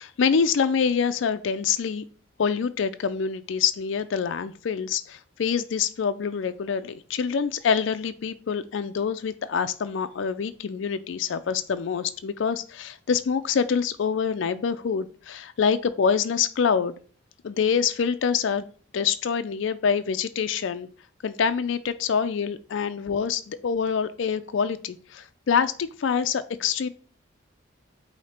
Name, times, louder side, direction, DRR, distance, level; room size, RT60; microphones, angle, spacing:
voice 1, 0.0-2.0 2.4-16.9 17.4-18.7 18.9-20.9 21.2-26.9, left 6 dB, 70° left, 11 dB, 0.4 m, -26 dB
8.4 x 2.8 x 4.3 m, 0.42 s
head